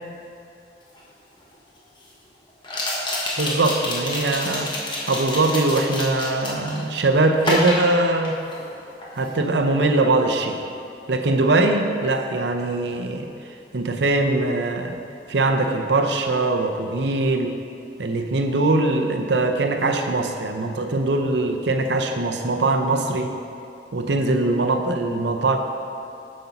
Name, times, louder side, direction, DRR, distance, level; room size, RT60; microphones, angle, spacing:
sound 1, 1.0-1.1 2.6-6.9 7.4-8.7 9.0-9.4, left 1 dB, 25° left, 1.2 m, -28 dB
voice 1, 3.4-8.4 9.1-10.6 11.1-13.3 13.7-15.0 15.3-17.5 18.0-23.3 23.9-25.6, right 2 dB, 75° right, 5 dB, 0.7 m, -21 dB
8.0 x 5.3 x 5.8 m, 2.6 s
head